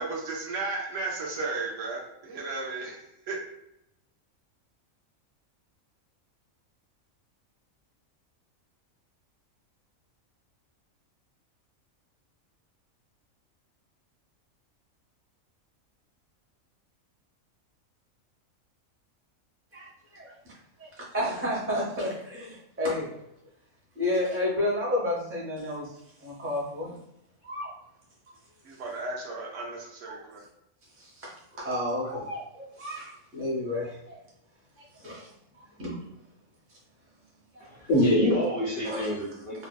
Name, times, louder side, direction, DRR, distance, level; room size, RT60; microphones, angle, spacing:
voice 1, 0.0-3.4 28.6-30.4, right 3 dB, 70° right, -1 dB, 0.9 m, -34 dB
voice 2, 19.7-20.2 20.8-23.1 24.0-25.9 26.2-26.9 27.4-27.7 28.8-28.9 30.1-30.2 31.0-31.3 31.6-34.2 35.0-35.3 35.8-36.0 37.8-37.9 38.8-39.2, left 1 dB, 20° right, -5 dB, 0.4 m, -31 dB
voice 3, 37.6-39.7, left 1 dB, 65° left, -5 dB, 0.6 m, -25 dB
2.6 x 2.2 x 2.2 m, 0.81 s
omnidirectional pair, 1.4 m